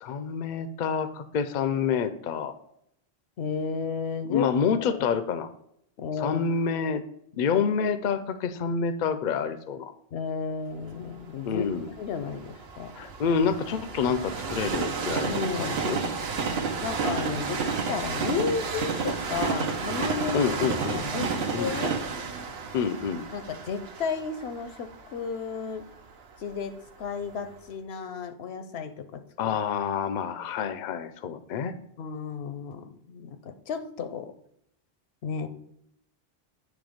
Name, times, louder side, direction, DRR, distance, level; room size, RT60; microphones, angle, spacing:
voice 1, 0.0-2.5 4.3-5.5 6.2-7.0 7.4-9.9 11.5-11.9 13.0-16.0 20.3-21.1 21.5-22.0 22.7-23.2 29.4-31.7, left 6 dB, 55° left, 12 dB, 0.6 m, -28 dB
voice 2, 3.4-4.5 4.8-5.0 6.0-6.4 10.1-11.7 12.0-12.9 15.2-15.8 16.8-20.4 20.9-22.0 23.3-25.9 26.4-29.6 32.0-34.3 35.2-35.5, left 6 dB, 80° left, 10 dB, 0.9 m, -33 dB
Train, 10.9-26.9 27.4-27.5, right 5 dB, 75° right, 1.0 m, -31 dB
9.0 x 3.3 x 5.0 m, 0.74 s
omnidirectional pair, 1.0 m